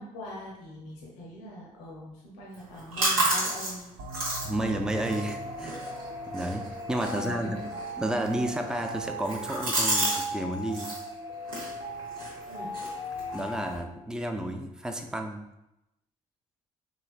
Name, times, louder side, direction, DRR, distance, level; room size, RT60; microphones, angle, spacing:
voice 1, 0.0-4.0 7.0-7.9 12.5-12.8, equal, 75° left, -3 dB, 0.7 m, -42 dB
sound 1, 2.5-10.3 10.5-11.0 11.4-13.8, right 2 dB, 90° right, 0.8 m, -32 dB
sound 2, 4.0-9.3, right 3 dB, 65° right, 0.4 m, -44 dB
voice 2, 4.4-5.8 6.3-7.6 8.0-10.9 13.3-15.4, right 1 dB, 5° right, 5 dB, 0.4 m, -31 dB
sound 3, 4.9-13.8, equal, 20° right, 1.0 m, -38 dB
3.1 x 2.9 x 2.4 m, 0.91 s
hypercardioid pair, 50°, 17 cm